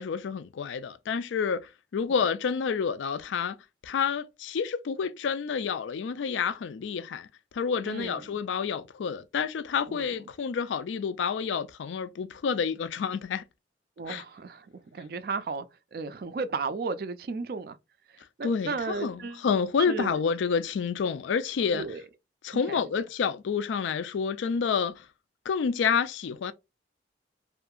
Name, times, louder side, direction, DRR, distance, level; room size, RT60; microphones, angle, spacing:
voice 1, 0.0-3.6 3.8-7.3 7.5-13.4 14.1-14.2 18.4-21.9 22.4-25.0 25.5-26.5, left 6 dB, 85° left, 0.3 m, -29 dB
voice 2, 7.8-8.4 9.9-10.1 14.0-15.7 15.9-17.8 18.1-19.4 19.9-20.2 21.7-22.0 22.5-22.8, right 4 dB, 55° right, 0.3 m, -35 dB
2.7 x 2.5 x 2.2 m
head